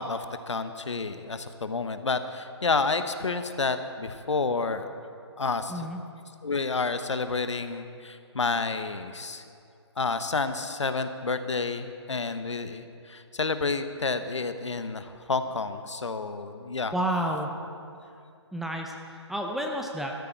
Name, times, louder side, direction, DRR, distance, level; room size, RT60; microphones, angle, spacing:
voice 1, 0.0-4.9 5.4-5.9 6.4-9.4 10.0-16.9, left 4 dB, 85° left, 9 dB, 1.0 m, -30 dB
voice 2, 16.9-17.5 18.5-20.1, right 1 dB, ahead, 1 dB, 0.6 m, -30 dB
14.5 x 13.0 x 4.5 m, 2.4 s
figure-of-eight pair, 150°, 15 cm